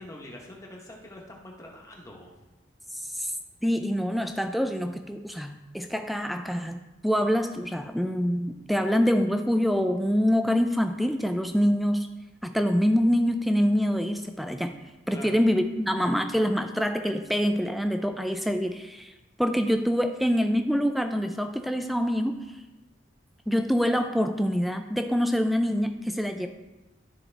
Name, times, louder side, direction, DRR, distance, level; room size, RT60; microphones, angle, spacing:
voice 1, 0.0-2.3 15.1-15.3, left 1 dB, 15° left, -1 dB, 0.9 m, -44 dB
voice 2, 2.9-3.3 3.6-12.1 12.4-14.7 15.1-19.1 19.4-22.4 23.5-26.5, equal, ahead, 7 dB, 0.3 m, -25 dB
12.5 x 4.3 x 3.3 m, 1.1 s
head